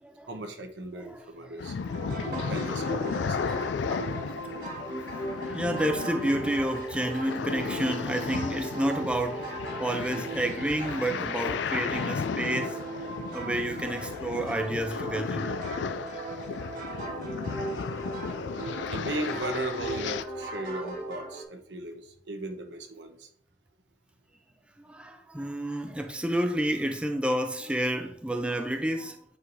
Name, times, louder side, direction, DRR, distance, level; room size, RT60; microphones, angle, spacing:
voice 1, 0.3-1.8 2.4-3.5 3.9-4.3 18.9-23.3, right 1 dB, 85° right, 0.9 m, -37 dB
voice 2, 0.9-1.6 2.7-2.8 4.6-4.8 5.5-12.8 13.3-15.5 20.6-20.8 24.8-29.2, right 1 dB, 5° right, 0.4 m, -30 dB
sound 1, 1.6-20.2, left 5 dB, 85° left, 0.4 m, -34 dB
sound 2, 1.9-21.4, right 2 dB, 50° right, 1.5 m, -38 dB
8.2 x 4.6 x 2.6 m
head